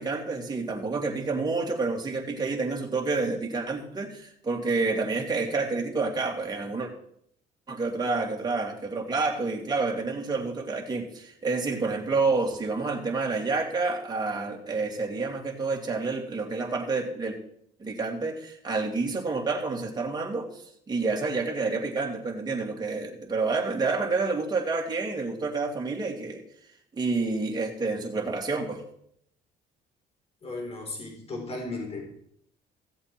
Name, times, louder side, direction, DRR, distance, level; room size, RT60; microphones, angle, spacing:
voice 1, 0.0-6.9 7.7-17.4 17.8-20.5 20.9-26.4 27.0-28.8, right 3 dB, 25° right, 0 dB, 2.8 m, -29 dB
voice 2, 30.4-32.0, left 2 dB, 35° left, 1 dB, 4.1 m, -35 dB
16.0 x 7.7 x 4.5 m, 0.70 s
cardioid pair, 110°, 17 cm